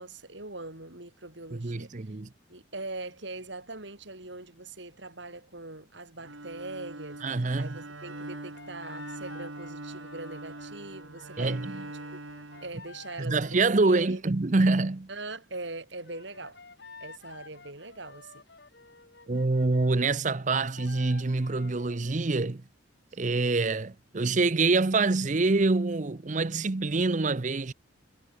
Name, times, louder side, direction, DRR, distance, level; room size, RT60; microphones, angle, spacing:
voice 1, 0.0-1.9 2.5-11.6 12.1-12.2 12.6-14.2 15.1-16.6 17.0-18.4 23.1-23.2, right 2 dB, 65° right, 5.2 m, -42 dB
voice 2, 1.6-2.3 7.2-7.7 11.4-11.8 13.2-15.1 19.3-22.6 23.2-27.7, right 3 dB, 40° right, 0.7 m, -26 dB
Bowed string instrument, 6.2-13.4, right 2 dB, 90° right, 4.3 m, -43 dB
sound 1, 8.0-14.2 16.0-22.2, left 4 dB, 55° left, 2.4 m, -51 dB
head